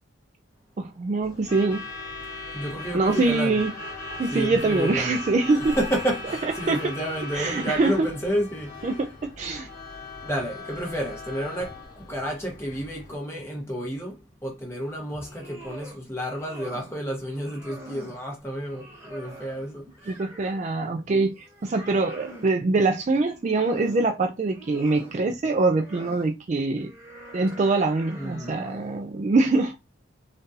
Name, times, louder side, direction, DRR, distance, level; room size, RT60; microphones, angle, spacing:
voice 1, 0.8-1.8 2.9-3.7 4.2-5.8 6.7-6.8 7.3-8.1 8.8-9.7 20.1-26.9 27.3-29.8, right 3 dB, 35° right, 0.3 m, -24 dB
Truck / Alarm, 1.2-13.2, left 2 dB, 45° left, 1.3 m, -38 dB
voice 2, 2.5-3.6 4.3-5.2 5.5-8.7 10.2-11.7 12.1-14.2 14.4-19.8 28.1-28.5, equal, 15° left, 1.1 m, -30 dB
sound 1, 15.1-16.0 16.3-17.0 17.3-18.2 18.7-20.7 21.1-22.5 23.2-24.1 24.4-25.2 25.7-26.3 26.8-28.9, right 1 dB, 15° right, 0.9 m, -44 dB
3.7 x 2.5 x 2.7 m
head